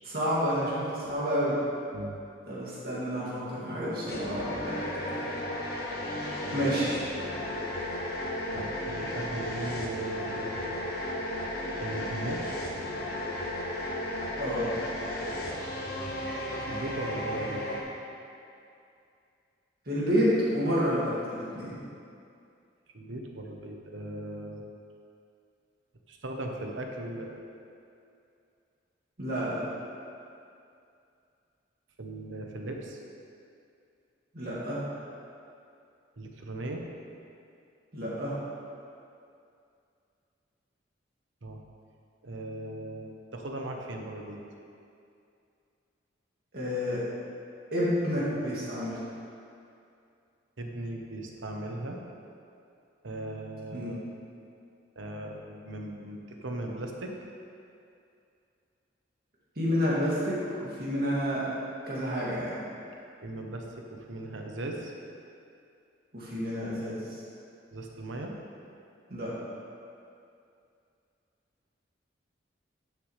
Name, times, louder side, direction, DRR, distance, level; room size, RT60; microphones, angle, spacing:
voice 1, 0.0-1.6 2.5-5.3 6.5-6.9 14.4-14.7 19.9-21.8 29.2-29.7 34.3-34.8 37.9-38.3 46.5-47.0 47.7-49.0 53.7-53.9 59.6-61.5 61.9-62.6 66.1-67.0 69.1-69.3, equal, 50° right, -7 dB, 2.3 m, -29 dB
sound 1, 4.1-17.8, left 1 dB, 55° left, 1.2 m, -34 dB
voice 2, 8.5-10.9 11.8-12.4 16.7-17.6 22.9-24.6 26.1-27.4 32.0-33.0 36.2-36.8 41.4-41.6 42.2-44.4 50.6-52.0 53.0-54.1 55.0-57.1 63.2-64.9 67.7-68.3, right 2 dB, 85° right, 1 dB, 1.0 m, -38 dB
12.0 x 6.8 x 3.3 m, 2.5 s
head